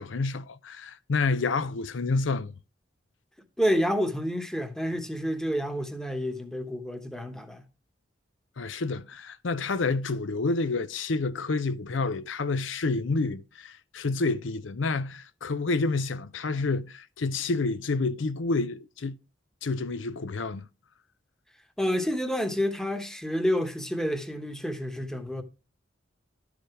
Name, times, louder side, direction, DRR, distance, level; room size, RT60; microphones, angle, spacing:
voice 1, 0.0-2.5 8.6-19.2 19.6-20.7, left 3 dB, 70° left, 0.6 m, -29 dB
voice 2, 3.6-7.7 21.8-25.4, equal, 5° left, 1.1 m, -29 dB
12.0 x 4.9 x 4.8 m
head